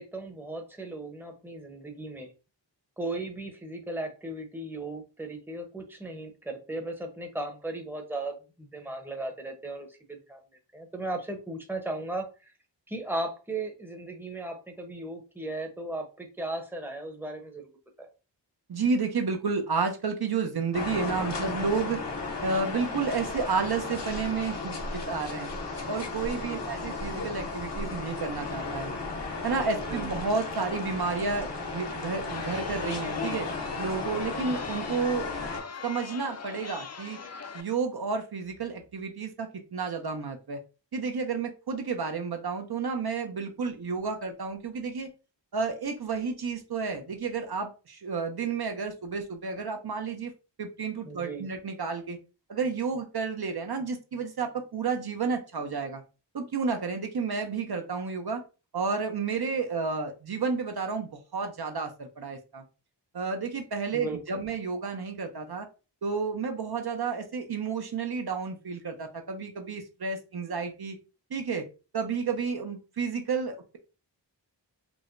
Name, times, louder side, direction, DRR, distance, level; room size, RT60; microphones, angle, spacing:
voice 1, 0.0-2.3 3.0-10.4 10.7-12.5 12.9-17.7 18.0-18.1 26.3-26.6 29.7-30.1 51.0-51.5 63.9-64.2, right 2 dB, 5° right, 3 dB, 0.7 m, -36 dB
voice 2, 18.7-22.0 22.4-25.5 25.9-28.9 29.4-33.5 33.8-35.3 35.8-37.2 37.5-40.6 40.9-45.1 45.5-50.3 50.6-52.2 52.5-56.0 56.3-58.4 58.7-62.6 63.1-65.7 66.0-71.0 71.3-71.7 71.9-73.8, right 5 dB, 60° right, 5 dB, 0.6 m, -31 dB
sound 1, 20.7-35.6, left 3 dB, 70° left, 0.9 m, -34 dB
Chatter, 32.3-37.6, left 6 dB, 40° left, 0.4 m, -41 dB
4.6 x 2.1 x 2.5 m, 0.32 s
wide cardioid pair, 60°, 44 cm